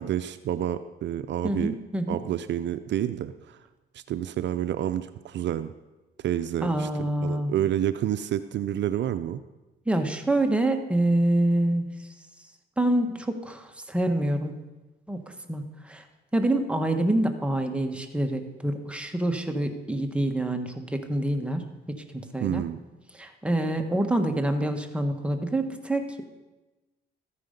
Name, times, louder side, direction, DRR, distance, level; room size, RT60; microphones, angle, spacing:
voice 1, 0.0-1.8 2.1-3.6 3.9-5.7 6.2-6.9 7.2-9.4 22.4-22.8, right 11 dB, 65° right, 12 dB, 0.5 m, -29 dB
voice 2, 1.4-2.2 6.6-7.5 9.9-11.9 12.8-14.5 15.1-15.2 15.5-16.0 16.3-21.6 22.1-22.6 23.1-26.2, right 1 dB, 5° right, 5 dB, 1.4 m, -26 dB
13.5 x 9.7 x 5.2 m, 1.1 s
cardioid pair, 90°, 20 cm